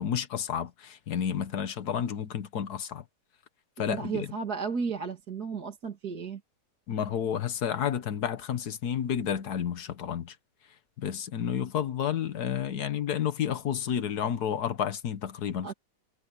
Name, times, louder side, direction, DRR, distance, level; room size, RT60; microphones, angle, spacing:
voice 1, 0.0-3.0 3.8-4.3 6.9-10.4 11.0-15.7, left 9 dB, 70° left, 1.6 m, -31 dB
voice 2, 3.9-6.4 15.6-15.7, right 5 dB, 65° right, 3.0 m, -33 dB
omnidirectional pair, 1.8 m